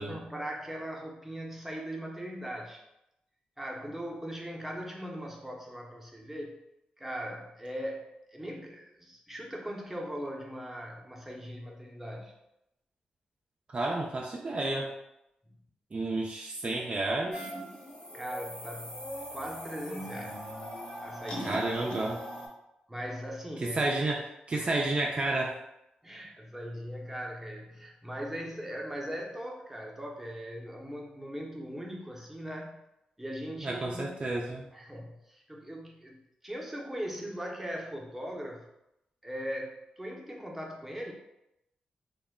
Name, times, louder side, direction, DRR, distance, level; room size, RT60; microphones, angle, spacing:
voice 1, 0.0-2.8 3.6-6.6 7.0-12.3 15.4-15.6 18.1-20.4 21.0-22.1 22.9-23.8 24.5-24.8 26.0-32.8 33.2-34.2 34.7-38.7 39.2-41.1, equal, 5° right, -1 dB, 0.7 m, -40 dB
voice 2, 13.7-14.9 15.9-17.5 21.4-22.2 23.8-25.6 33.6-34.7, right 2 dB, 40° right, -1 dB, 0.4 m, -31 dB
sound 1, 17.3-22.5, equal, 30° left, 0.9 m, -40 dB
2.2 x 2.0 x 3.5 m, 0.86 s
supercardioid pair, 45°, 3 cm